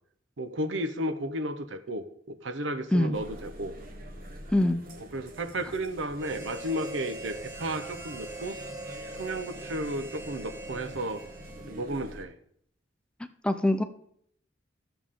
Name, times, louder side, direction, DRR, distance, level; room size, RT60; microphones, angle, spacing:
voice 1, 0.4-3.7 5.1-8.6 9.1-11.2 11.7-12.3, right 1 dB, 80° right, 10 dB, 0.8 m, -33 dB
sound 1, 3.1-12.3, right 1 dB, 50° right, 1.2 m, -46 dB
Harmonica, 6.2-12.0, right 2 dB, 15° right, 1.3 m, -42 dB
voice 2, 13.4-13.8, left 1 dB, 5° left, 9 dB, 0.5 m, -23 dB
13.5 x 6.9 x 3.7 m, 0.67 s
head